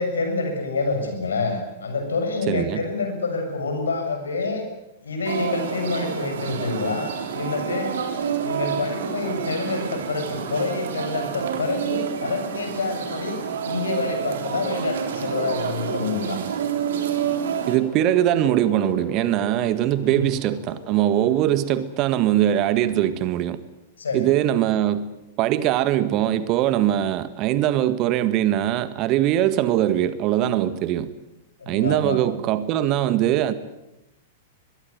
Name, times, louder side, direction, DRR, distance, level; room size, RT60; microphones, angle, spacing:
voice 1, 0.0-4.6 5.0-8.0 8.4-13.4 13.6-16.4 20.0-20.3 24.0-24.3 31.6-32.2, left 3 dB, 70° left, 6.9 m, -27 dB
voice 2, 2.5-2.8 17.7-23.6 24.1-25.1 25.4-31.1 31.7-33.5, right 12 dB, 35° right, 1.7 m, -21 dB
sound 1, 5.2-17.8, right 7 dB, 60° right, 3.8 m, -28 dB
sound 2, 16.9-23.1, left 2 dB, 45° left, 7.5 m, -41 dB
23.5 x 21.5 x 9.6 m
figure-of-eight pair, 100°, 0 cm